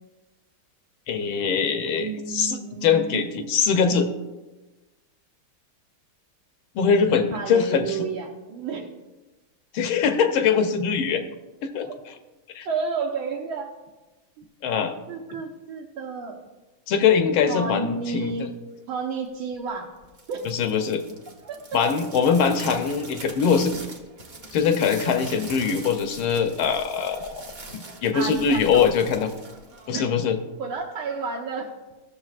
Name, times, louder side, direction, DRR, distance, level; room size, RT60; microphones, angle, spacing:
voice 1, 1.1-4.1 6.7-8.0 9.7-11.2 11.7-11.9 12.5-12.7 14.6-14.9 16.9-18.5 20.4-21.0 21.7-23.7 24.5-27.4 27.7-29.3 29.9-30.4, left 6 dB, 75° left, 7 dB, 1.5 m, -22 dB
voice 2, 2.0-3.2 7.3-8.9 11.9-12.0 12.6-13.7 14.4-14.5 15.1-16.4 17.5-18.5 18.9-19.9 20.3-20.4 21.5-21.8 28.1-28.9 29.9-30.1 30.6-31.7, right 4 dB, 80° right, -2 dB, 1.6 m, -31 dB
sound 1, 20.0-30.4, right 2 dB, 50° right, 0.5 m, -42 dB
15.0 x 6.7 x 2.4 m, 1.1 s
omnidirectional pair, 2.3 m